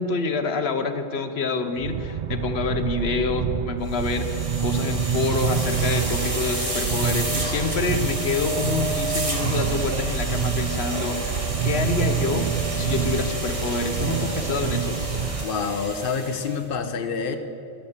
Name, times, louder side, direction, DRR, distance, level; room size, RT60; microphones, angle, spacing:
voice 1, 0.0-12.5 12.8-15.0, left 4 dB, 80° left, 8 dB, 1.2 m, -27 dB
sound 1, 1.8-15.4, right 7 dB, 55° right, 0.6 m, -27 dB
sound 2, 3.9-16.6, right 1 dB, 35° right, 2.0 m, -30 dB
voice 2, 15.4-17.4, left 5 dB, 60° left, 7 dB, 1.1 m, -27 dB
15.0 x 13.0 x 7.2 m, 2.8 s
omnidirectional pair, 1.0 m